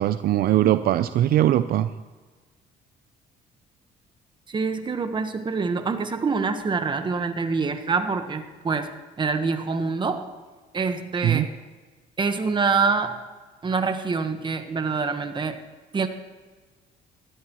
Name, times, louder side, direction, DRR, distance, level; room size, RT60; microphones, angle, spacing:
voice 1, 0.0-1.9 11.2-11.5, right 12 dB, 65° right, 11 dB, 0.5 m, -20 dB
voice 2, 4.5-10.3 10.7-11.5 12.2-13.2 13.6-15.6 15.9-16.1, right 4 dB, 30° right, 8 dB, 1.3 m, -25 dB
20.0 x 13.0 x 3.1 m, 1.4 s
cardioid pair, 110°, 17 cm